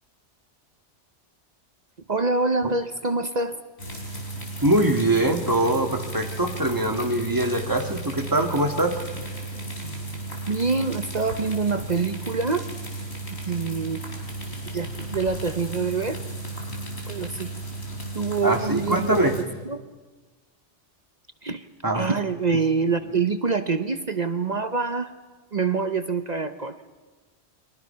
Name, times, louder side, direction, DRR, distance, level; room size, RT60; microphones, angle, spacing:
voice 1, 2.1-3.6 10.5-12.7 13.5-14.0 14.7-16.2 17.1-17.5 18.1-19.8 21.4-21.7 21.9-25.1 25.5-26.8, right 4 dB, 40° right, 10 dB, 0.9 m, -25 dB
sound 1, 3.8-19.4, right 2 dB, 60° left, 4.2 m, -34 dB
voice 2, 4.6-9.0 18.4-19.3 21.8-22.1, right 1 dB, 15° right, 4 dB, 1.9 m, -23 dB
30.0 x 23.0 x 5.7 m, 1.3 s
omnidirectional pair, 1.2 m